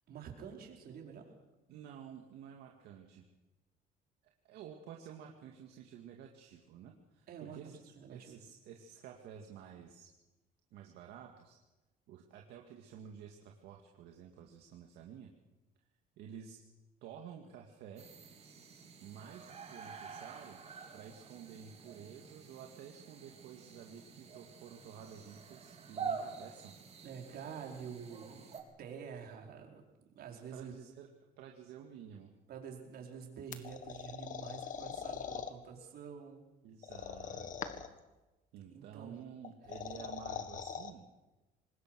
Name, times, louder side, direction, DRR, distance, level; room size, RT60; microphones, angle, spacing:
voice 1, 0.1-1.3 7.3-7.6 8.0-8.4 27.0-28.4 28.8-30.8 32.5-36.4 38.7-39.2 39.6-39.7, right 7 dB, 65° right, 1 dB, 5.0 m, -48 dB
voice 2, 1.7-3.3 4.2-10.1 10.7-11.6 12.1-15.3 16.2-16.6 17.0-18.1 19.0-20.6 20.9-26.8 30.5-31.1 31.4-32.3 36.6-37.9 38.5-41.1, right 8 dB, 80° right, 1 dB, 2.2 m, -51 dB
sound 1, 18.0-28.6, right 6 dB, 40° right, 3.9 m, -47 dB
sound 2, 33.5-35.5 36.8-38.0 39.4-40.9, left 7 dB, 50° left, 1.8 m, -42 dB
25.0 x 20.5 x 6.3 m, 1.1 s
cardioid pair, 110°, 17 cm